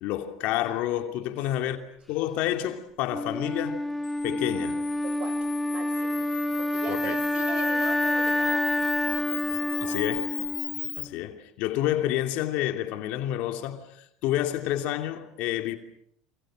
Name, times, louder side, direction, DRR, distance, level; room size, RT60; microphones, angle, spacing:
voice 1, 0.0-1.8 2.1-3.8 4.2-4.8 6.9-7.2 9.8-10.3 11.0-15.8, left 13 dB, 65° left, 2.8 m, -29 dB
Wind instrument woodwind instrument, 3.1-11.1, left 1 dB, 5° left, 1.4 m, -28 dB
Camera, 4.0-11.0, left 15 dB, 80° left, 2.3 m, -37 dB
voice 2, 5.0-6.3 6.6-8.7, right 6 dB, 45° right, 6.4 m, -41 dB
29.0 x 28.0 x 6.4 m
hypercardioid pair, 85°, 3 cm